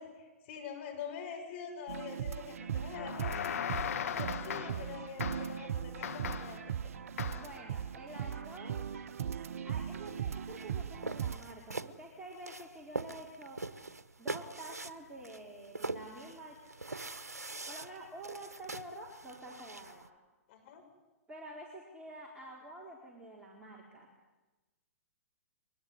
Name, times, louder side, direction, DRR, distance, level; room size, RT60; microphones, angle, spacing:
voice 1, 0.0-3.5 3.8-6.9 20.5-20.8, left 7 dB, 45° left, 4 dB, 6.7 m, -45 dB
sound 1, 1.9-11.4, right 8 dB, 65° right, 0.8 m, -39 dB
sound 2, 2.9-4.9 5.2-5.6 6.0-6.6 7.2-7.6, left 8 dB, 65° left, 1.4 m, -38 dB
voice 2, 7.3-8.9 9.6-13.6 14.2-16.6 17.7-20.1 21.3-24.1, right 1 dB, 10° right, -2 dB, 4.4 m, -48 dB
sound 3, 10.1-20.1, right 3 dB, 90° right, 1.1 m, -44 dB
23.5 x 19.5 x 9.9 m, 1.1 s
hypercardioid pair, 120°, 8 cm